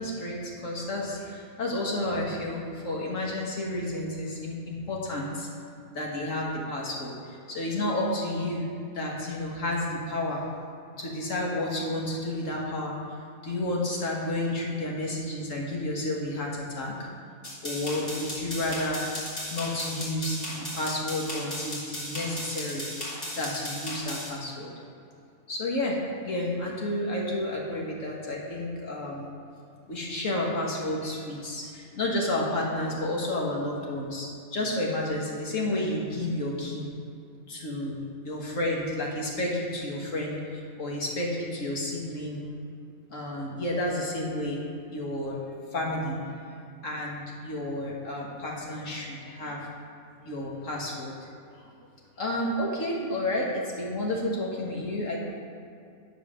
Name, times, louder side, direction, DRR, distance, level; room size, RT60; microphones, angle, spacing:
voice 1, 0.0-5.5 5.9-8.7 8.9-10.4 11.0-13.0 13.4-17.1 17.6-19.1 19.5-22.9 23.3-24.7 25.5-29.3 29.9-36.9 37.5-42.4 43.1-44.6 44.9-45.4 45.7-46.2 46.8-49.7 50.2-51.1 52.2-55.2, left 1 dB, 55° left, -2 dB, 1.8 m, -31 dB
sound 1, 17.4-24.3, left 1 dB, 40° left, 2.5 m, -36 dB
10.5 x 5.3 x 6.2 m, 2.4 s
omnidirectional pair, 1.6 m